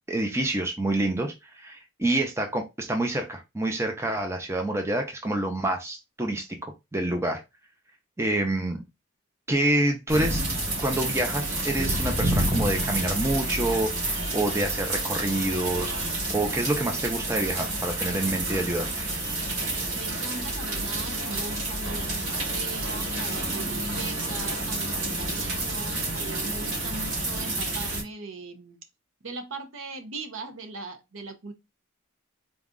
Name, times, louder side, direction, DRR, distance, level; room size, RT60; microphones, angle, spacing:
voice 1, 0.1-7.4 8.2-8.8 9.5-10.5 10.8-19.1, right 1 dB, 10° right, 0.5 m, -27 dB
sound 1, 10.1-28.0, right 2 dB, 90° right, 2.3 m, -29 dB
voice 2, 19.9-28.8 29.2-31.5, right 3 dB, 70° right, 0.8 m, -39 dB
4.0 x 2.4 x 3.6 m
head